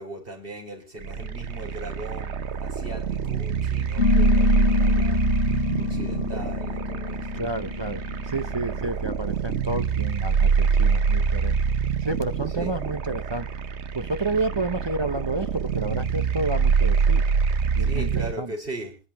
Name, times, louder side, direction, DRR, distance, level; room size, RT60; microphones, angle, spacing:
voice 1, 0.0-5.3 5.8-7.6 12.5-12.7 17.8-19.0, right 1 dB, 55° right, 4.9 m, -39 dB
sound 1, 1.0-18.3, right 6 dB, 85° right, 1.2 m, -25 dB
sound 2, 4.0-8.9, left 9 dB, 90° left, 1.2 m, -27 dB
voice 2, 7.3-11.6 12.0-13.5 13.9-17.2 17.7-18.1 18.4-18.5, right 2 dB, 30° right, 0.6 m, -30 dB
27.0 x 10.5 x 2.9 m
omnidirectional pair, 1.1 m